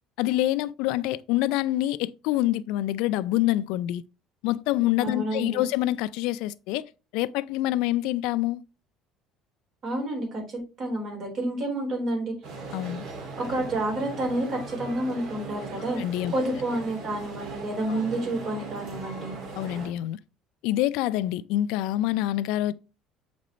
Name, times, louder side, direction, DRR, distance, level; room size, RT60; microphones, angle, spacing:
voice 1, 0.2-4.0 4.4-8.6 12.7-13.0 15.9-16.3 17.9-18.0 19.6-20.2 20.6-22.7, left 14 dB, 80° left, 0.3 m, -26 dB
voice 2, 5.0-5.6 9.8-12.3 13.4-16.0 16.3-19.3, right 1 dB, 40° right, 4.0 m, -29 dB
sound 1, 12.4-19.9, right 3 dB, 55° right, 2.2 m, -39 dB
7.5 x 5.2 x 3.1 m
cardioid pair, 155°, 0 cm